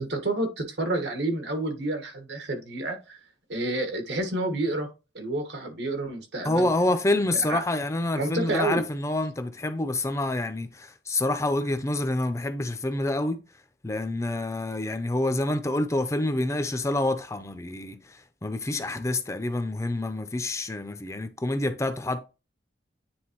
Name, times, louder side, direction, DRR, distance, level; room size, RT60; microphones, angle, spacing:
voice 1, 0.0-3.2 3.5-4.9 5.1-6.7 7.5-7.6 8.1-8.8, right 2 dB, 80° right, 1.4 m, -29 dB
voice 2, 6.4-13.4 13.8-18.2 18.4-22.3, left 2 dB, 15° left, 0.5 m, -27 dB
9.5 x 3.5 x 3.0 m
head